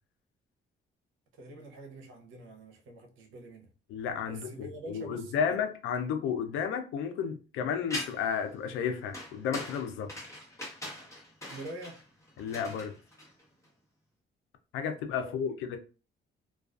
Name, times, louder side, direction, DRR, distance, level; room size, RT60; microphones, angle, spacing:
voice 1, 1.3-3.7 4.3-5.6 11.5-12.0 15.2-15.5, right 1 dB, 85° right, 0.6 m, -45 dB
voice 2, 3.9-10.1 12.4-12.9 14.7-15.8, left 7 dB, 90° left, 0.4 m, -32 dB
sound 1, 7.9-8.4 9.1-13.6, left 1 dB, 15° left, 1.1 m, -41 dB
2.3 x 2.3 x 2.3 m
cardioid pair, 90°, 20 cm